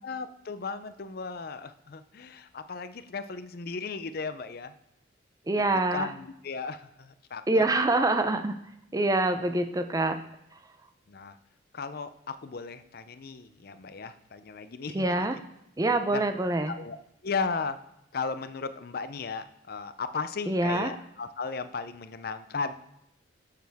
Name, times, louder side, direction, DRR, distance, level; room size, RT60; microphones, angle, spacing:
voice 1, 0.0-4.7 5.9-7.6 11.1-11.4 11.7-15.1 16.0-16.2 16.7-17.0 17.2-17.8 18.1-22.7, left 4 dB, 50° left, 12 dB, 0.5 m, -36 dB
voice 2, 5.5-6.1 7.5-8.6 8.9-10.2 14.9-15.4 15.8-16.7 20.5-20.9, right 2 dB, 20° right, 8 dB, 0.5 m, -25 dB
13.5 x 6.7 x 3.5 m, 0.79 s
head